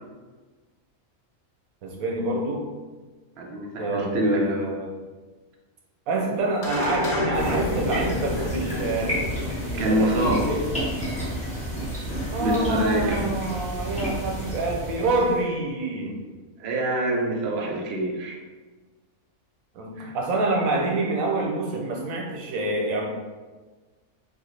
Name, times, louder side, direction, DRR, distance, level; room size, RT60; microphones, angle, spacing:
voice 1, 1.8-2.7 3.8-4.9 6.1-9.1 9.6-10.8 12.3-16.2 19.7-23.1, right 2 dB, 90° right, 0 dB, 1.1 m, -26 dB
voice 2, 3.4-4.7 9.8-10.4 12.4-13.2 16.6-18.4 20.0-20.1, right 1 dB, 60° right, -1 dB, 0.7 m, -25 dB
sound 1, 6.6-11.3, left 2 dB, 75° left, 1.0 m, -31 dB
sound 2, 7.3-15.4, equal, 5° left, 0.8 m, -30 dB
3.1 x 2.4 x 3.1 m, 1.3 s
omnidirectional pair, 1.4 m